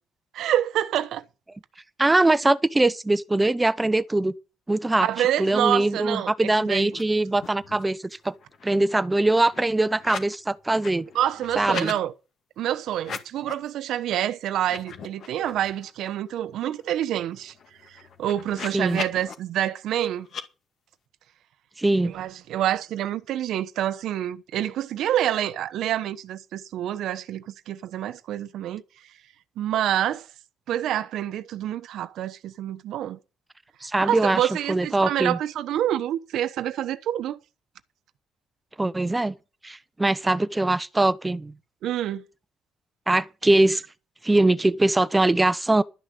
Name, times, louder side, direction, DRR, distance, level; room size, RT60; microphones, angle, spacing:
voice 1, 0.3-1.2 5.0-6.9 11.1-12.1 12.6-17.5 18.2-20.3 22.0-28.8 29.6-30.3 30.7-33.2 34.0-37.4 41.8-42.2, right 11 dB, 70° right, 1.1 m, -27 dB
voice 2, 2.0-4.3 4.7-8.0 8.2-8.3 8.6-11.0 11.6-11.9 18.7-19.0 21.8-22.1 33.8-34.4 34.7-35.4 38.8-39.3 39.6-41.5 43.1-43.8 44.2-45.8, right 2 dB, 10° right, 0.8 m, -22 dB
sound 1, 6.9-7.0 7.3-8.0 8.3-10.4 10.7-12.0 12.9-13.7 14.1-14.2 14.6-15.9 16.3-16.4 16.7-19.3 20.2-20.4, left 6 dB, 55° left, 2.1 m, -39 dB
12.5 x 6.3 x 8.5 m
cardioid pair, 125°, 0 cm